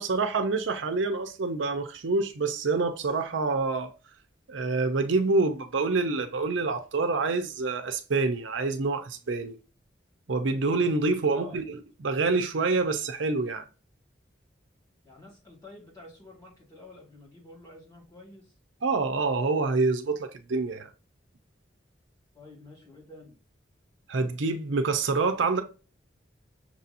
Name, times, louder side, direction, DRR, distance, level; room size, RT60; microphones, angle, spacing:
voice 1, 0.0-3.9 4.5-9.5 10.3-13.6 18.8-20.9 24.1-25.6, right 3 dB, 80° right, 0.6 m, -27 dB
voice 2, 11.3-11.6 15.0-18.5 22.3-23.4, left 2 dB, 20° left, 2.0 m, -49 dB
6.0 x 2.8 x 2.5 m
head